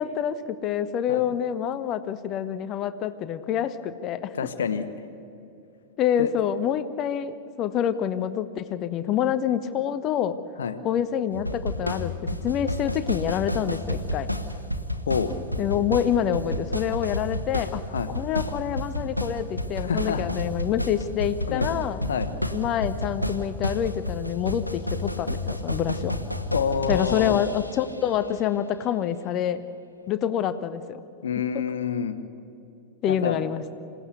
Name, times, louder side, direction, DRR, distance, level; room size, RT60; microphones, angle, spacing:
voice 1, 0.0-4.3 6.0-10.4 10.8-14.3 15.6-17.8 18.1-22.0 22.5-26.2 26.9-29.6 30.1-31.0 33.0-33.6, left 9 dB, 35° left, 12 dB, 0.9 m, -27 dB
voice 2, 4.3-4.9 6.2-6.3 10.6-10.8 15.1-15.3 17.9-18.1 19.8-20.2 21.5-21.7 22.1-22.3 26.5-27.4 31.2-32.2 33.1-33.4, left 7 dB, 65° left, 10 dB, 1.4 m, -27 dB
sound 1, 11.3-27.9, left 1 dB, 90° left, 1.4 m, -31 dB
27.0 x 17.0 x 8.2 m, 2.7 s
figure-of-eight pair, 90°, 0 cm